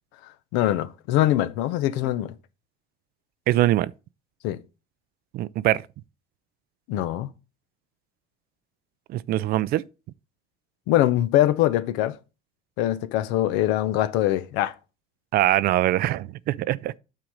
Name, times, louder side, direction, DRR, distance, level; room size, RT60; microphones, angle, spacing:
voice 1, 0.2-2.3 4.4-4.6 6.9-7.3 10.9-12.2 12.8-14.7, left 13 dB, 80° left, 0.7 m, -23 dB
voice 2, 3.5-3.9 5.3-5.8 9.1-9.8 15.3-16.9, right 15 dB, 55° right, 0.4 m, -22 dB
9.0 x 3.9 x 4.8 m
supercardioid pair, 105°, 19 cm